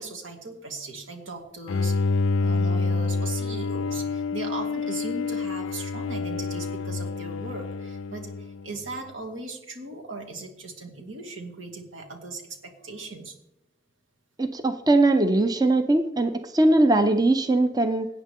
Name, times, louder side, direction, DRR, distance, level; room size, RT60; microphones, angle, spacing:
voice 1, 0.0-12.6 12.8-13.3, right 3 dB, 80° right, 2 dB, 2.4 m, -38 dB
Bowed string instrument, 1.7-8.9, left 4 dB, 80° left, 0.4 m, -28 dB
voice 2, 14.4-18.1, right 2 dB, 20° right, 8 dB, 0.6 m, -21 dB
17.5 x 9.0 x 3.7 m, 0.88 s
head